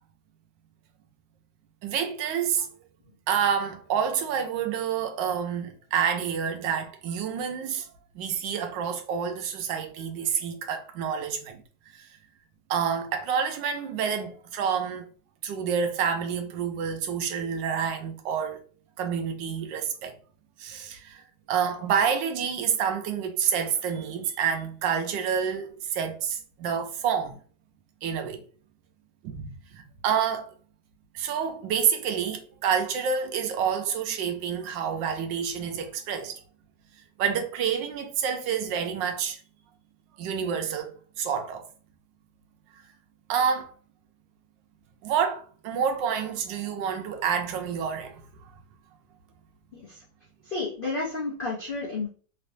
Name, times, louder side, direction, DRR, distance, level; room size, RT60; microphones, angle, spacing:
voice 1, 1.8-2.7 3.3-7.9 8.1-11.6 11.9-12.1 12.7-15.1 15.4-18.6 19.0-20.1 20.6-21.2 21.5-27.4 28.0-28.4 29.2-30.5 31.1-36.4 37.2-39.4 40.2-41.6 43.3-43.7 45.0-48.2, right 7 dB, 90° right, 1.4 m, -28 dB
voice 2, 50.5-52.1, left 3 dB, 80° left, 0.4 m, -31 dB
3.2 x 3.2 x 2.6 m
omnidirectional pair, 1.9 m